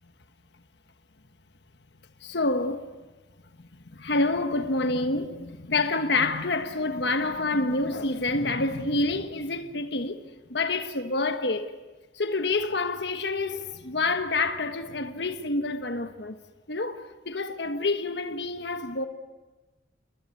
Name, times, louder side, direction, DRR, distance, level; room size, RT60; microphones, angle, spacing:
voice 1, 2.2-2.9 3.9-10.2 10.5-11.7 12.1-16.4 16.7-19.1, left 2 dB, 60° left, 1.4 m, -27 dB
29.0 x 20.5 x 9.7 m
head